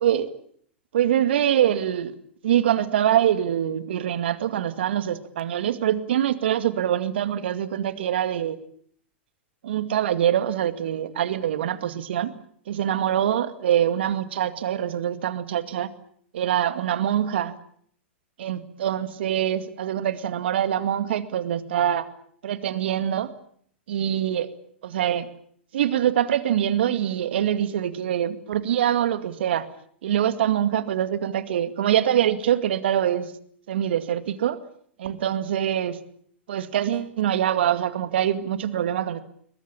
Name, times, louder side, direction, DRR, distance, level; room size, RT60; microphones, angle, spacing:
voice 1, 0.0-0.3 0.9-2.1 2.4-8.6 9.6-12.3 12.7-15.9 16.3-17.6 18.4-22.1 22.4-23.3 23.9-24.5 24.8-25.3 25.7-29.7 30.0-33.3 33.7-34.6 35.0-36.0 36.5-39.2, right 10 dB, 65° right, 11 dB, 2.2 m, -24 dB
22.5 x 21.0 x 8.8 m, 0.62 s
hypercardioid pair, 100°, 6 cm